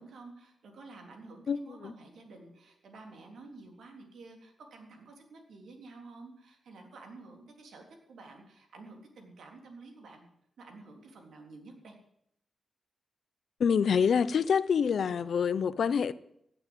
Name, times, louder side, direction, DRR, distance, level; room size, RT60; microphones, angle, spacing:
voice 1, 0.0-10.3 10.6-11.9, right 3 dB, 80° right, 3.5 m, -50 dB
voice 2, 1.5-1.9 13.6-16.1, left 6 dB, 65° left, 0.7 m, -26 dB
16.5 x 8.9 x 8.0 m
wide cardioid pair, 150°, 0 cm